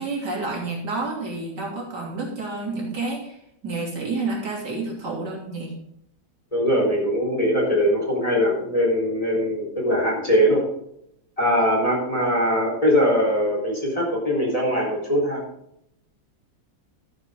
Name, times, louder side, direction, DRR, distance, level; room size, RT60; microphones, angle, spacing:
voice 1, 0.0-3.4 3.6-5.7, right 3 dB, 60° right, -3 dB, 3.6 m, -29 dB
voice 2, 6.5-10.6 11.4-15.4, equal, 15° left, -2 dB, 4.0 m, -21 dB
12.5 x 9.5 x 3.7 m, 0.74 s
omnidirectional pair, 2.1 m